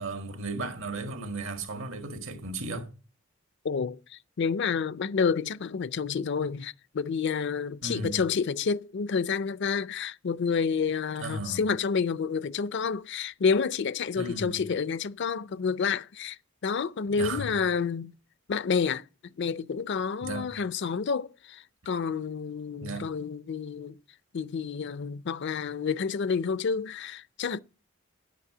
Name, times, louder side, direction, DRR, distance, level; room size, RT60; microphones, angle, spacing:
voice 1, 0.0-2.9 7.8-8.2 11.2-11.6 14.2-14.6 17.2-17.5 20.2-20.5 22.8-23.1, right 2 dB, 75° right, 1.7 m, -35 dB
voice 2, 3.6-4.0 4.4-16.4 16.6-18.1 18.5-19.0 19.4-24.0 24.3-27.6, left 5 dB, 60° left, 0.5 m, -29 dB
10.0 x 8.3 x 6.0 m
head